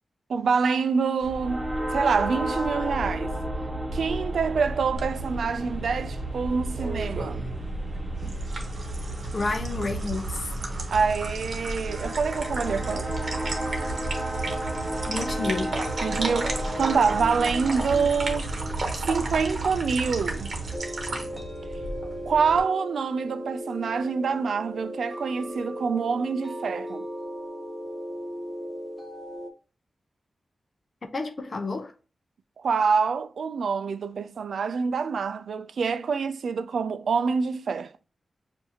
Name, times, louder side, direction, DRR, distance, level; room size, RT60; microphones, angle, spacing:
voice 1, 0.3-3.3 3.9-7.4 10.9-13.1 16.0-18.5 19.0-20.6 22.3-27.0 32.6-37.9, right 5 dB, 85° right, 0.3 m, -26 dB
sound 1, 1.2-20.8, right 1 dB, 35° right, 1.3 m, -32 dB
sound 2, 5.0-22.6, right 2 dB, 55° right, 1.1 m, -35 dB
voice 2, 9.3-10.5 15.1-15.8 31.1-31.9, left 3 dB, 40° left, 0.6 m, -30 dB
sound 3, 20.7-29.5, equal, 5° right, 0.8 m, -37 dB
7.0 x 2.6 x 2.8 m
wide cardioid pair, 145°, 0 cm